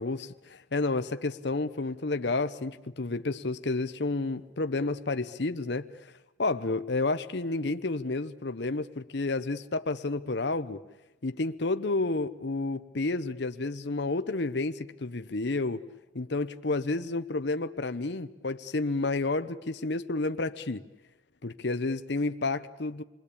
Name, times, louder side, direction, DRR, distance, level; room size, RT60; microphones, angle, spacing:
voice 1, 0.0-6.1 6.4-10.8 11.2-15.8 16.1-20.8 21.4-23.0, left 3 dB, 55° left, 10 dB, 0.9 m, -30 dB
28.5 x 22.0 x 8.5 m, 1.0 s
head